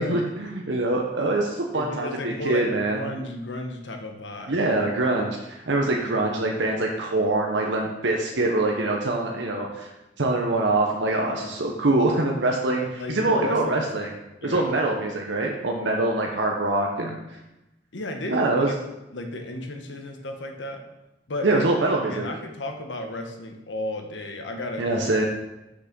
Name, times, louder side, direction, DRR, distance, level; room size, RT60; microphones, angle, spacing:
voice 1, 0.0-3.0 4.5-9.9 10.2-14.2 14.4-17.2 18.3-18.7 21.4-22.3 24.8-25.3, right 2 dB, 80° right, 0 dB, 0.9 m, -24 dB
voice 2, 1.7-4.7 12.8-14.1 14.4-14.7 17.9-18.5 19.1-20.8 21.3-25.0, left 1 dB, 80° left, 3 dB, 1.3 m, -34 dB
6.5 x 6.1 x 6.0 m, 0.96 s
head